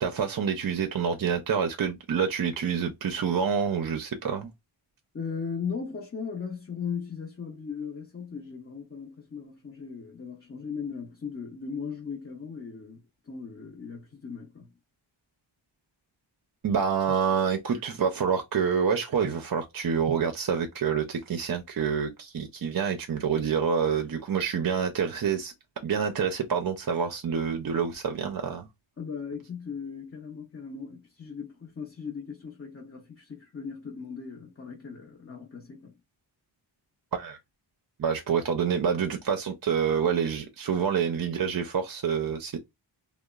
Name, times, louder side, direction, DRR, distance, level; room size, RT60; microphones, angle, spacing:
voice 1, 0.0-4.5 16.6-25.5 25.8-28.7 37.1-37.4 38.0-42.6, right 6 dB, 45° right, 0.5 m, -27 dB
voice 2, 5.1-14.7 29.0-35.9, left 6 dB, 30° left, 0.6 m, -38 dB
2.8 x 2.0 x 2.3 m
wide cardioid pair, 60°, 48 cm